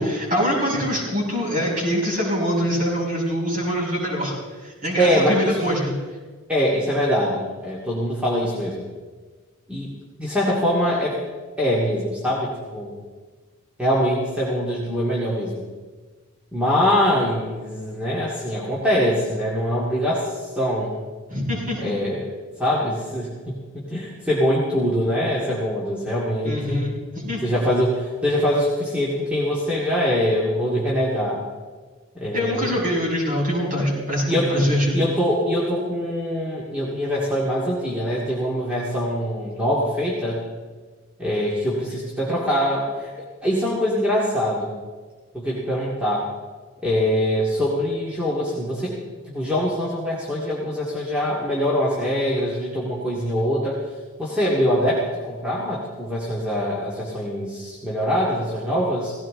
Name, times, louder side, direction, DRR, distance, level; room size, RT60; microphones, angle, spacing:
voice 1, 0.0-4.3 4.6-5.9 21.3-22.0 26.4-27.4 32.3-35.0, equal, 35° right, -5 dB, 6.1 m, -24 dB
voice 2, 5.0-5.6 6.5-8.9 9.7-9.9 10.2-11.2 11.6-12.9 13.8-15.6 16.5-21.0 21.8-22.3 22.6-26.8 27.4-31.4 32.1-32.8 34.3-40.5 41.2-43.1 43.4-44.7 45.3-46.3 46.8-49.0 49.2-53.8 54.2-59.1, equal, 5° right, -6 dB, 2.2 m, -23 dB
18.0 x 16.5 x 3.8 m, 1.4 s
head